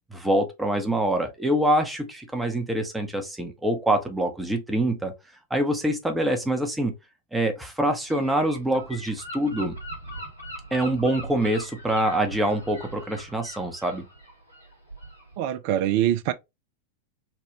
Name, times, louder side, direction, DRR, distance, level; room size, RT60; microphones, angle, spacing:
voice 1, 0.1-5.1 5.5-6.9 7.3-9.7 10.7-14.1, right 1 dB, 5° right, 0.8 m, -25 dB
Gull seagull / Wind, 8.1-15.4, right 1 dB, 85° left, 1.6 m, -40 dB
voice 2, 15.4-16.3, right 12 dB, 45° right, 0.4 m, -24 dB
3.4 x 2.2 x 2.9 m
figure-of-eight pair, 90°, 0 cm